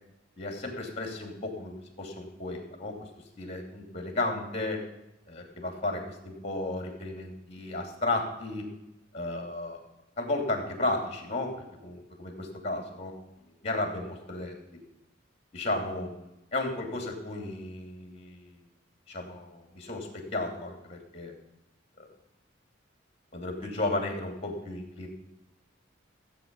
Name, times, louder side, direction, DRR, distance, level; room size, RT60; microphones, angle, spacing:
voice 1, 0.4-3.0 3.4-4.8 5.3-8.6 9.1-9.8 10.2-11.5 11.8-13.1 13.6-14.6 15.5-18.6 19.1-21.3 22.0-22.1 23.3-25.1, left 2 dB, 35° left, 2 dB, 2.8 m, -34 dB
15.5 x 8.2 x 5.4 m, 0.93 s
head